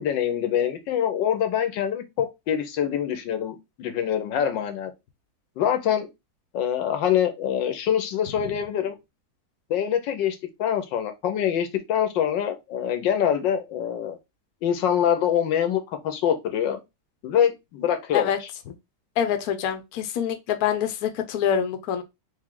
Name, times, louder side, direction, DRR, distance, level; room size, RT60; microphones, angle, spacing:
voice 1, 0.0-4.9 5.6-6.1 6.5-8.9 9.7-14.2 14.6-16.8 17.2-18.3, left 9 dB, 85° left, 1.5 m, -25 dB
voice 2, 19.2-22.0, left 9 dB, 65° left, 1.1 m, -25 dB
3.6 x 3.3 x 3.6 m
omnidirectional pair, 2.0 m